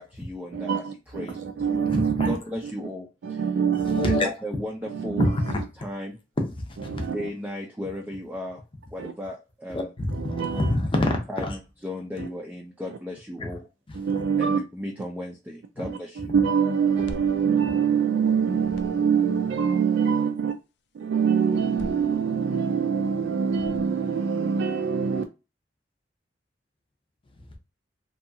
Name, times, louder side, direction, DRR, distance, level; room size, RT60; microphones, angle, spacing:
voice 1, 0.0-0.8 1.1-1.4 1.7-1.9 2.3-3.1 4.2-5.3 5.8-6.2 7.1-8.6 8.9-9.9 11.3-11.6 11.8-13.7 14.4-16.3, left 1 dB, 10° right, 0.4 m, -35 dB
voice 2, 0.5-2.4 3.2-4.2 4.9-5.3 6.9-7.3 9.0-9.1 10.1-10.7 12.2-12.3 13.9-14.6 15.8-20.5 20.9-25.2, right 6 dB, 80° right, 0.3 m, -24 dB
voice 3, 1.9-2.3 3.8-4.3 5.2-5.6 6.5-7.1 9.7-11.6 13.9-14.2 15.8-15.9 27.4-27.5, left 2 dB, 30° left, 0.7 m, -27 dB
sound 1, 16.8-18.3 18.5-19.3 21.5-22.7 23.5-24.3, left 1 dB, 65° left, 0.3 m, -43 dB
2.8 x 2.3 x 2.6 m
head